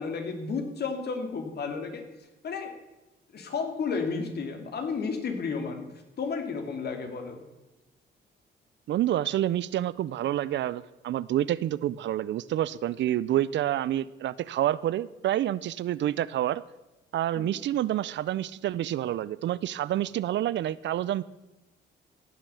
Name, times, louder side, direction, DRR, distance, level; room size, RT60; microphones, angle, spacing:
voice 1, 0.0-2.0 2.4-2.7 3.3-5.9 6.2-7.4 17.4-17.6, left 5 dB, 55° left, 5 dB, 2.6 m, -32 dB
voice 2, 8.9-16.6 17.1-21.2, right 12 dB, 65° right, 19 dB, 0.5 m, -28 dB
16.5 x 7.2 x 7.0 m, 1.0 s
cardioid pair, 90°, 20 cm